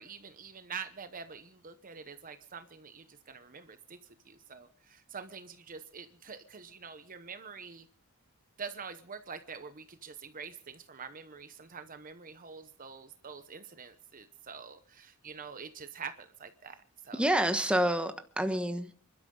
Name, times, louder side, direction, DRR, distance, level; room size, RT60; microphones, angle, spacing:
voice 1, 0.0-4.0 4.3-7.9 8.6-17.2, right 5 dB, 40° right, 0.9 m, -46 dB
voice 2, 17.1-18.9, right 1 dB, 5° right, 1.2 m, -28 dB
28.0 x 12.5 x 3.8 m
head